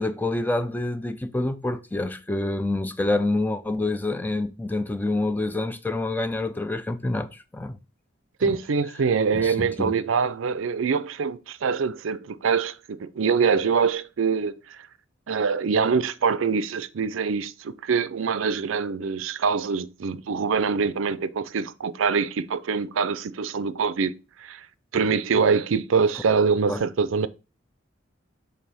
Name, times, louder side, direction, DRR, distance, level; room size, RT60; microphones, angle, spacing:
voice 1, 0.0-7.8 8.4-8.6 9.3-9.9 26.7-26.8, left 2 dB, 10° left, 0.4 m, -27 dB
voice 2, 8.4-14.9 15.3-24.1 24.4-24.7 24.9-27.3, right 5 dB, 80° right, 0.5 m, -24 dB
6.7 x 3.4 x 4.2 m
head